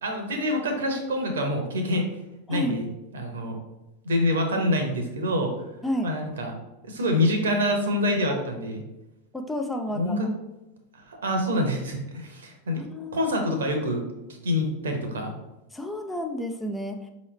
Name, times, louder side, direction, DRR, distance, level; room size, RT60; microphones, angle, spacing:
voice 1, 0.0-2.0 2.5-2.9 3.1-3.6 4.0-5.7 6.0-6.5 6.8-8.8 9.9-10.3 10.9-12.8 13.1-14.1 14.4-15.3, left 1 dB, 65° right, 4 dB, 0.9 m, -26 dB
voice 2, 2.5-2.8 5.8-6.1 8.3-8.7 9.3-10.2 12.7-13.2 15.7-17.1, equal, 5° left, 4 dB, 0.4 m, -31 dB
5.3 x 3.1 x 3.1 m, 0.97 s
figure-of-eight pair, 90°, 0 cm